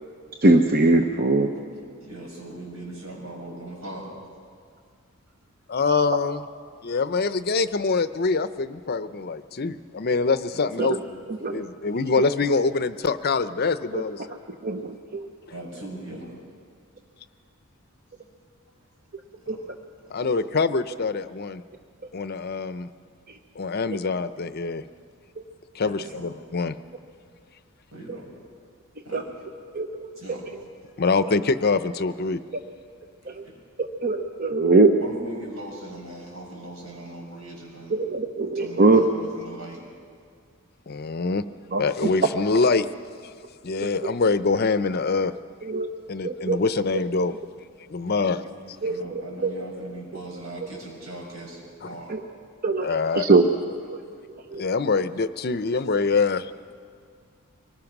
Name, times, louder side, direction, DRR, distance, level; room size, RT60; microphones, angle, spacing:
voice 1, 0.4-1.5 10.8-11.0 11.4-11.6 13.9-14.0 14.6-15.3 19.5-19.6 29.1-29.2 29.7-30.1 34.0-35.0 37.9-39.0 41.7-41.8 43.8-44.1 45.6-45.9 46.2-46.6 48.8-49.6 52.1-52.2 52.6-52.9 53.1-53.4 53.9-54.0 54.5-54.6, right 3 dB, 45° right, 5 dB, 0.8 m, -21 dB
voice 2, 2.0-4.1 5.7-5.8 10.8-10.9 15.5-16.4 19.4-19.6 20.0-20.1 25.8-26.3 27.9-28.3 29.0-29.2 30.2-30.5 33.2-33.6 35.0-38.0 38.5-39.8 48.0-48.5 48.8-52.2, right 1 dB, 80° right, -2 dB, 6.5 m, -39 dB
voice 3, 5.7-6.5 6.8-11.0 11.5-14.4 20.1-21.6 22.1-22.9 23.6-24.8 25.7-26.8 31.0-32.4 40.9-41.4 41.8-42.9 43.2-43.3 43.6-45.3 46.1-47.3 47.9-48.4 52.8-53.3 54.5-56.5, left 4 dB, 45° left, 13 dB, 0.6 m, -24 dB
24.5 x 20.0 x 6.0 m, 2.1 s
head